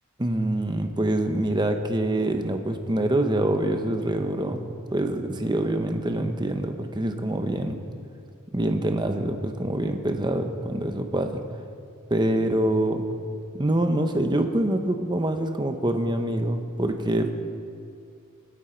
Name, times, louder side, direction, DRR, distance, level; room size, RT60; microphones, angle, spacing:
voice 1, 0.2-7.8 8.5-11.4 12.1-13.1 13.5-17.3, right 1 dB, 20° right, 6 dB, 0.9 m, -25 dB
25.0 x 8.9 x 4.5 m, 2.4 s
head